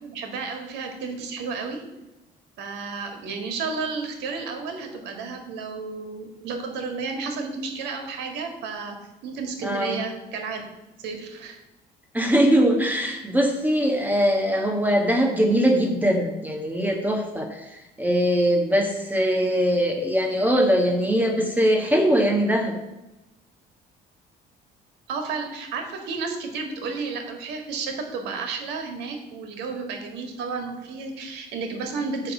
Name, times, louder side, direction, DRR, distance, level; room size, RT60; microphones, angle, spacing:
voice 1, 0.0-1.8 2.6-10.6 11.0-11.6 25.1-32.3, right 4 dB, 85° right, 4 dB, 1.7 m, -32 dB
voice 2, 9.6-10.0 12.1-22.8, equal, 10° right, 1 dB, 1.3 m, -21 dB
10.0 x 3.5 x 7.2 m, 0.98 s
cardioid pair, 110°, 17 cm